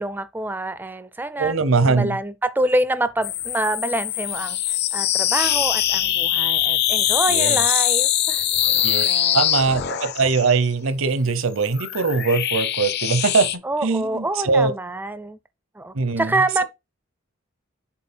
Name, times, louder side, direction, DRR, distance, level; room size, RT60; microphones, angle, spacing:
voice 1, 0.0-1.5 1.9-8.4 9.0-9.4 13.6-15.4 15.8-16.6, right 2 dB, 10° right, 0.4 m, -26 dB
voice 2, 1.4-2.2 7.3-7.6 8.8-9.0 9.3-14.8 15.9-16.3, right 4 dB, 70° right, 0.8 m, -21 dB
sound 1, 3.2-10.5 11.4-13.6, left 11 dB, 50° left, 0.6 m, -22 dB
7.4 x 3.9 x 4.3 m
head